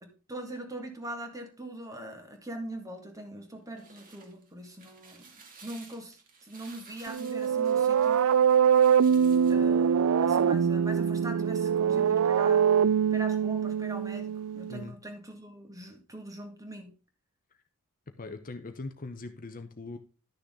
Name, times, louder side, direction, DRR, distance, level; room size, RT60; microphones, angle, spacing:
voice 1, 0.0-5.3 5.6-8.3 9.5-12.7 13.1-16.9, right 1 dB, 15° right, 4 dB, 2.0 m, -42 dB
sound 1, 3.5-9.7, right 4 dB, 40° right, 2.3 m, -54 dB
sound 2, 7.1-14.8, right 7 dB, 70° right, 0.4 m, -24 dB
voice 2, 18.1-20.0, left 3 dB, 40° left, 8 dB, 0.8 m, -41 dB
11.5 x 6.5 x 3.7 m, 0.33 s
head